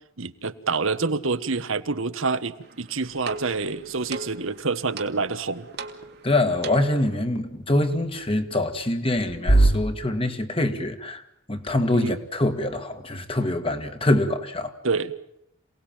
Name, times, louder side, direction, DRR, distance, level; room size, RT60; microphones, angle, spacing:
voice 1, 0.2-5.7 11.9-12.1 14.8-15.1, right 4 dB, 70° right, 1.4 m, -27 dB
sound 1, 2.6-7.2, right 3 dB, 50° right, 1.9 m, -39 dB
sound 2, 5.7-9.7, right 2 dB, 65° left, 3.6 m, -28 dB
voice 2, 6.2-11.2 11.5-14.7, left 1 dB, 25° left, 1.9 m, -24 dB
27.5 x 18.5 x 9.0 m
head